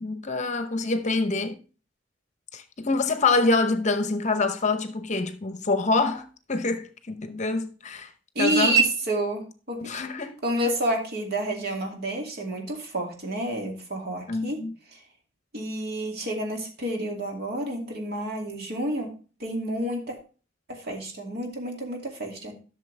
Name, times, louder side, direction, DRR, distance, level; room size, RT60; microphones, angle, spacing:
voice 1, 0.0-1.6 2.5-8.1 8.4-8.7 9.8-10.4 14.3-14.7, left 3 dB, 40° left, 0.8 m, -26 dB
voice 2, 8.3-9.9 10.4-14.6 14.9-15.0 15.5-19.1 19.4-20.2 20.7-22.5, right 2 dB, 55° right, 2.4 m, -28 dB
12.0 x 6.5 x 3.3 m
head